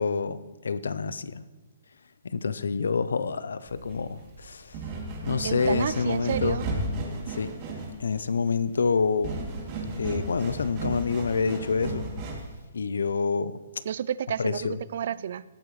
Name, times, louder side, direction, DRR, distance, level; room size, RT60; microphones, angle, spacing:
voice 1, 0.0-1.5 2.2-4.8 5.2-6.6 7.3-7.5 8.0-9.4 10.0-12.1 12.7-13.6 14.4-14.8, left 5 dB, 85° left, 15 dB, 0.6 m, -27 dB
sound 1, 3.7-12.6, right 2 dB, 35° right, 2.8 m, -34 dB
voice 2, 5.4-6.7 13.9-15.4, right 9 dB, 60° right, 19 dB, 0.4 m, -30 dB
17.0 x 9.1 x 3.2 m, 1.2 s
hypercardioid pair, 145°, 0 cm